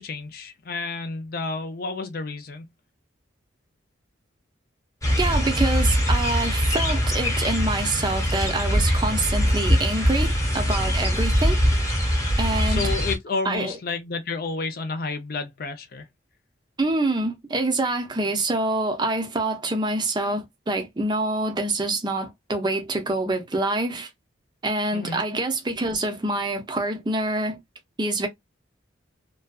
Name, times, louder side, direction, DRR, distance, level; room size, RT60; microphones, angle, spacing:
voice 1, 0.0-2.6 12.7-16.1 24.9-25.2, left 4 dB, 50° left, 0.4 m, -30 dB
sound 1, 5.0-13.2, equal, 15° left, 0.9 m, -22 dB
voice 2, 5.2-11.6 12.4-12.9 13.4-13.8 16.8-24.1 24.6-27.6 28.0-28.3, right 2 dB, 20° right, 0.4 m, -26 dB
2.5 x 2.2 x 2.2 m
head